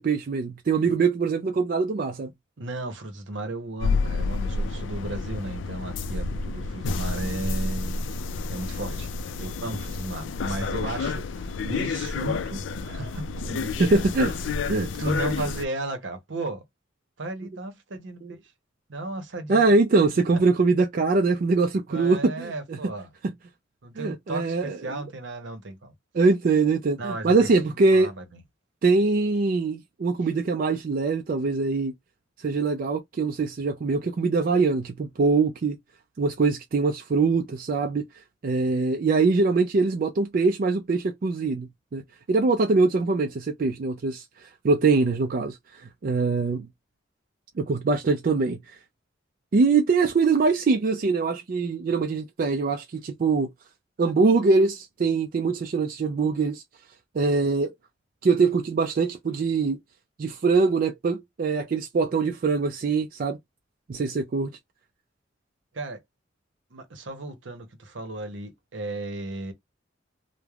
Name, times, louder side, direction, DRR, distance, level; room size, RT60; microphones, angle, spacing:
voice 1, 0.0-2.3 13.8-14.3 14.7-14.9 18.2-18.3 19.5-22.8 23.2-23.3 24.0-25.0 26.1-28.1 28.8-31.9 32.4-35.8 36.2-38.0 38.4-42.0 42.3-46.7 47.6-48.8 49.5-53.5 54.0-56.6 57.1-57.7 58.2-59.8 60.2-63.4 63.9-64.5, right 4 dB, 45° right, 0.4 m, -23 dB
voice 2, 2.6-8.0 8.5-9.1 9.4-13.9 15.0-16.6 17.2-18.4 18.9-19.7 21.9-23.1 23.8-25.9 27.0-28.2 65.7-66.0 66.7-69.5, right 2 dB, 70° right, 0.8 m, -34 dB
sound 1, 3.8-15.6, left 4 dB, 75° left, 0.3 m, -30 dB
3.2 x 2.1 x 2.3 m
head